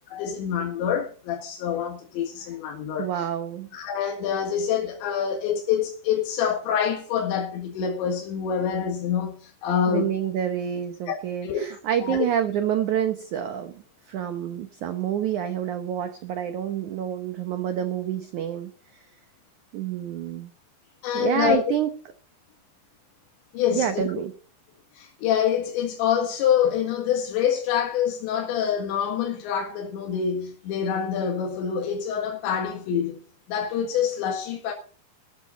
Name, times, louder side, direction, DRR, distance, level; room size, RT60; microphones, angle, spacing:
voice 1, 0.1-3.3 3.7-10.1 11.1-11.2 11.4-11.6 12.0-12.3 21.0-21.6 23.5-24.1 25.0-33.2 33.5-34.7, left 8 dB, 90° left, 4.1 m, -26 dB
voice 2, 3.0-3.7 9.9-19.0 19.7-20.5 21.1-21.9 23.7-24.3, right 9 dB, 80° right, 1.7 m, -28 dB
14.0 x 13.0 x 4.0 m
omnidirectional pair, 5.0 m